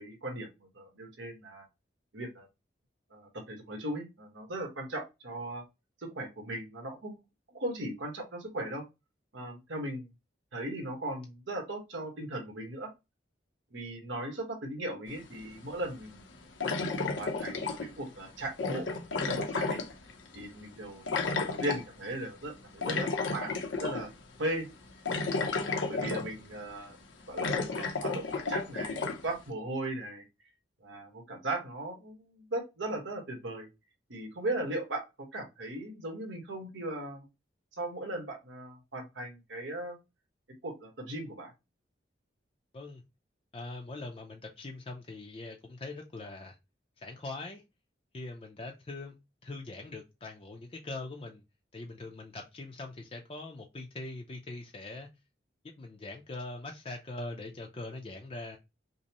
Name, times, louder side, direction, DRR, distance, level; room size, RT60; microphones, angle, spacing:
voice 1, 0.0-1.6 2.1-2.5 3.1-5.6 6.0-7.2 7.5-8.8 9.3-10.1 10.5-12.9 13.7-16.2 17.2-18.9 19.2-19.8 20.3-21.1 21.4-24.1 24.4-24.7 25.5-27.0 27.3-29.0 29.2-30.3 30.8-33.7 34.1-37.3 37.8-40.0 40.6-41.5, right 1 dB, 85° right, 1.2 m, -38 dB
sound 1, 15.2-15.3 16.6-18.1 18.6-20.4 21.1-21.8 22.8-24.1 24.4-24.5 25.1-26.5 26.9-27.0 27.4-29.2, left 3 dB, 85° left, 0.7 m, -32 dB
voice 2, 43.5-46.6 47.0-47.6 48.1-49.2 49.4-51.4 51.7-55.1 55.8-58.6, left 2 dB, 30° left, 0.5 m, -42 dB
5.2 x 2.0 x 2.9 m
head